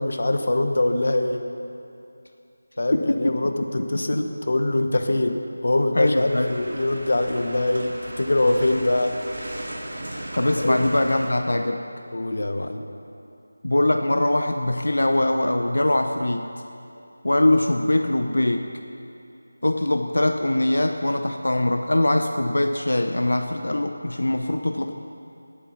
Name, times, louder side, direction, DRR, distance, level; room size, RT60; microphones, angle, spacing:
voice 1, 0.0-1.4 2.8-9.1 10.6-10.8 12.1-12.9, left 2 dB, 60° left, 6 dB, 1.1 m, -23 dB
voice 2, 2.9-3.3 5.9-6.5 10.4-11.8 13.6-16.5 17.2-18.7 19.6-24.9, left 1 dB, 85° left, 6 dB, 0.8 m, -22 dB
sound 1, 6.1-11.3, right 1 dB, 55° right, 3.1 m, -36 dB
19.0 x 8.9 x 5.8 m, 2.7 s
figure-of-eight pair, 175°, 0 cm